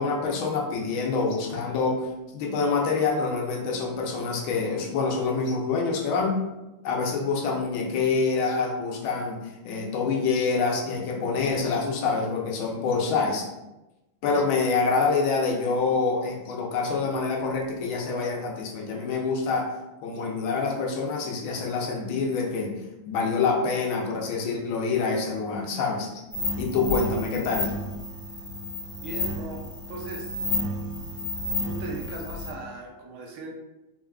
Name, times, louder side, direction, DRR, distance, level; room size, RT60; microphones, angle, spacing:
voice 1, 0.0-2.1 2.3-6.3 6.8-13.4 14.2-19.7 20.0-22.7 23.1-26.1 26.6-27.7, left 4 dB, 85° left, 0 dB, 1.6 m, -26 dB
sound 1, 26.3-32.5, left 2 dB, 60° right, 2.2 m, -31 dB
voice 2, 29.0-30.3 31.6-33.5, right 3 dB, 90° right, 1 dB, 1.6 m, -38 dB
4.7 x 3.6 x 2.3 m, 1.0 s
omnidirectional pair, 2.2 m